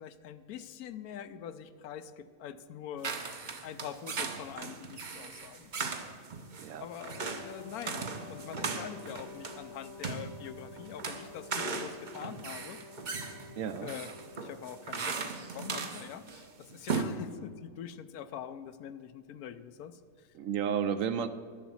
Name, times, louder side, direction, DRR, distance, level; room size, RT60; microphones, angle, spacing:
voice 1, 0.0-3.2 3.6-5.7 6.8-12.8 13.8-14.1 14.4-20.3, left 9 dB, 75° left, 12 dB, 1.1 m, -44 dB
sound 1, 3.0-16.4 16.7-17.0, right 4 dB, 40° right, 0.7 m, -38 dB
Wind instrument woodwind instrument, 7.2-15.3, left 3 dB, 60° left, 0.7 m, -50 dB
voice 2, 13.6-13.9 20.3-21.3, right 8 dB, 70° right, 11 dB, 0.9 m, -32 dB
11.5 x 7.1 x 7.1 m, 2.1 s
omnidirectional pair, 1.6 m